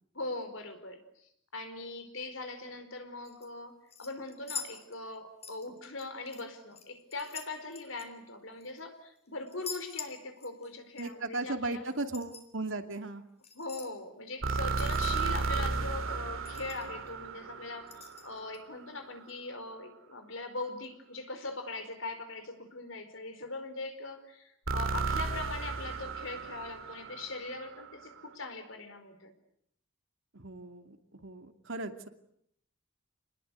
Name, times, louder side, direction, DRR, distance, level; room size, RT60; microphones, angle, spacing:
voice 1, 0.1-11.8 13.5-29.3, left 2 dB, 70° left, 9 dB, 4.7 m, -41 dB
sound 1, 3.2-3.5 3.9-5.2 5.4-6.4 6.7-8.8 9.5-10.7 11.0-11.1 11.9-12.5 13.4-13.9 14.8-15.5 15.8-15.9 16.2-16.3 16.4-17.1 17.9-18.6 19.3-19.4, left 6 dB, 30° left, 3.9 m, -45 dB
voice 2, 11.0-13.2 30.3-31.0 31.2-32.1, right 2 dB, 70° right, 7 dB, 2.6 m, -36 dB
Low Cinematic Squelch Bass, 14.4-18.5 24.7-27.8, right 4 dB, 85° right, 2.8 m, -33 dB
28.5 x 20.5 x 9.5 m, 0.71 s
head